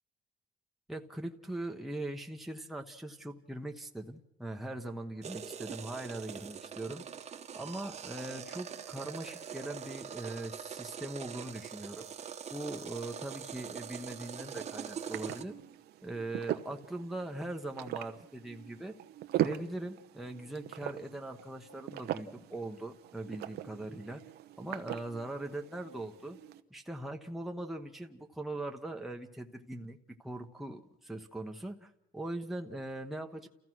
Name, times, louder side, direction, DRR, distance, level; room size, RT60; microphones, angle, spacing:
voice 1, 0.9-7.0 7.5-12.1 12.5-15.5 16.0-18.9 19.4-24.2 24.6-26.4 26.7-33.5, right 1 dB, ahead, 2 dB, 1.1 m, -41 dB
sound 1, 5.2-15.4, right 8 dB, 40° right, 1.3 m, -43 dB
sound 2, 13.7-26.6, right 13 dB, 75° right, 1.0 m, -41 dB
30.0 x 14.5 x 6.2 m, 0.90 s
cardioid pair, 110°, 17 cm